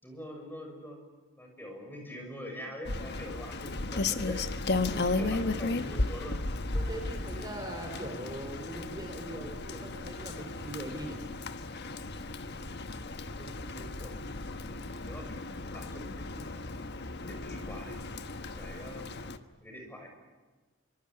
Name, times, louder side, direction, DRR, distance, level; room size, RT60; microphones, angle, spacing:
voice 1, 0.0-1.0 1.4-4.5 4.9-6.4 7.3-7.4 13.2-14.2 14.6-15.4 15.7-16.7 17.3-17.9 18.4-19.1 19.6-20.1, left 1 dB, 10° left, 2 dB, 6.7 m, -45 dB
Rain, 2.8-19.4, left 3 dB, 50° left, 1.3 m, -35 dB
voice 2, 4.9-5.7 6.7-11.2, right 1 dB, 20° right, 3 dB, 3.8 m, -41 dB
25.0 x 25.0 x 8.9 m, 1.3 s
head